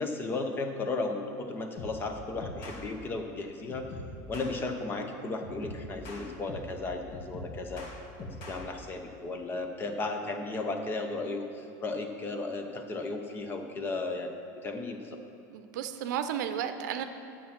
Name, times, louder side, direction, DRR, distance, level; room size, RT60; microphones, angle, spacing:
voice 1, 0.0-3.9 4.3-7.9 8.2-14.3 14.6-15.2, left 3 dB, 20° left, 5 dB, 0.8 m, -35 dB
sound 1, 1.8-2.1 2.4-2.8 3.7-4.6 5.4-6.8 7.1-8.6, left 1 dB, 45° left, 1.6 m, -42 dB
voice 2, 15.5-17.0, right 9 dB, 80° right, 8 dB, 0.7 m, -33 dB
9.3 x 7.3 x 6.0 m, 2.9 s
supercardioid pair, 155°, 10 cm